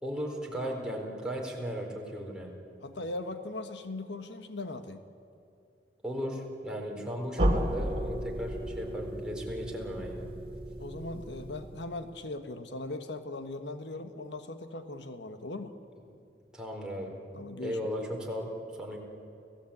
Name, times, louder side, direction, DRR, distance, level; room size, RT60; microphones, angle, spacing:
voice 1, 0.0-2.6 6.0-10.3 16.5-17.1 17.6-18.5 18.8-19.0, equal, 5° right, -1 dB, 4.2 m, -36 dB
voice 2, 2.8-5.0 10.8-15.7 17.3-17.8, left 2 dB, 75° left, 8 dB, 1.3 m, -39 dB
sound 1, 7.4-12.2, equal, 35° right, 2.9 m, -33 dB
30.0 x 17.0 x 8.7 m, 2.6 s
head